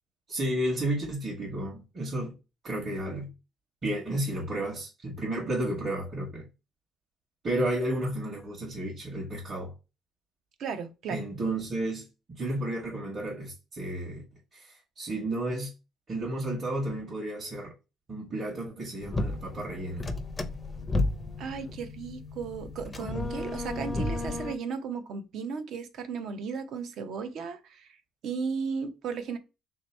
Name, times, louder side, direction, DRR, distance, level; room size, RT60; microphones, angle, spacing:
voice 1, 0.3-2.3 2.6-3.3 3.8-6.5 7.4-9.7 11.1-12.1 12.3-14.2 14.5-15.7 16.1-17.7 18.1-20.1, right 1 dB, 30° right, 1.2 m, -32 dB
voice 2, 10.6-11.2 21.4-27.9 28.2-29.4, right 5 dB, 60° right, 0.7 m, -35 dB
sound 1, 19.0-24.6, left 2 dB, 15° left, 0.5 m, -33 dB
3.5 x 2.8 x 4.3 m
cardioid pair, 140°, 0 cm